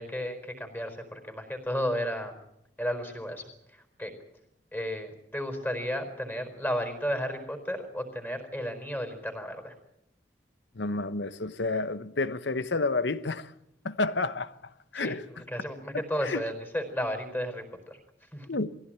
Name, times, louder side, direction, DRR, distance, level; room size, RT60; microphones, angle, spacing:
voice 1, 0.0-2.4 2.8-3.4 3.7-4.1 4.7-9.7 14.9-15.1 15.5-18.0 18.3-18.5, equal, 10° left, 4.5 m, -33 dB
voice 2, 10.7-13.5 13.8-14.6 14.9-15.3 15.9-16.4 18.5-18.8, left 3 dB, 70° left, 1.1 m, -30 dB
22.0 x 16.5 x 8.8 m
head